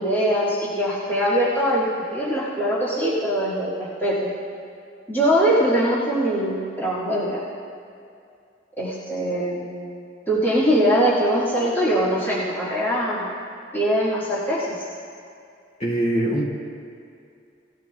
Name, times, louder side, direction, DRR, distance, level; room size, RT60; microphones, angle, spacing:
voice 1, 0.0-4.3 5.1-7.4 8.8-9.7 10.3-13.3 13.7-14.7, equal, 10° left, -10 dB, 1.9 m, -22 dB
voice 2, 15.8-16.4, right 1 dB, 40° left, -6 dB, 2.9 m, -22 dB
19.0 x 13.5 x 2.4 m, 2.4 s
head